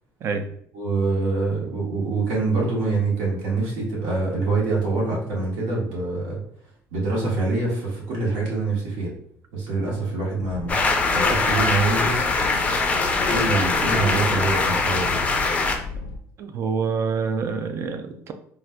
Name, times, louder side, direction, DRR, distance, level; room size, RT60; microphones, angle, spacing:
voice 1, 0.7-6.4 6.9-9.1 9.5-10.7 11.1-12.3 13.3-15.2, right 3 dB, 85° right, -4 dB, 1.4 m, -25 dB
sound 1, 10.4-16.2, left 4 dB, 75° left, 0.5 m, -34 dB
sound 2, 10.7-15.8, left 3 dB, 20° left, 0.4 m, -22 dB
voice 2, 16.4-18.3, right 5 dB, 45° right, 7 dB, 0.4 m, -26 dB
4.0 x 2.5 x 2.2 m, 0.67 s
cardioid pair, 140°, 6 cm